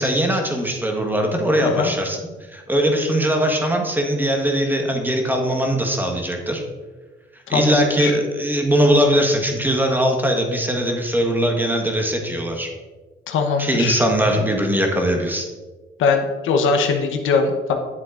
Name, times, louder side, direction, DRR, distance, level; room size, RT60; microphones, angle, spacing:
voice 1, 0.0-2.2 2.5-6.6 7.5-12.7 13.6-15.5, equal, 10° right, 2 dB, 1.4 m, -20 dB
voice 2, 1.6-1.9 7.5-8.2 13.3-14.0 16.0-17.7, left 5 dB, 80° left, 4 dB, 1.0 m, -21 dB
9.8 x 7.5 x 2.5 m, 1.3 s
cardioid pair, 90°, 20 cm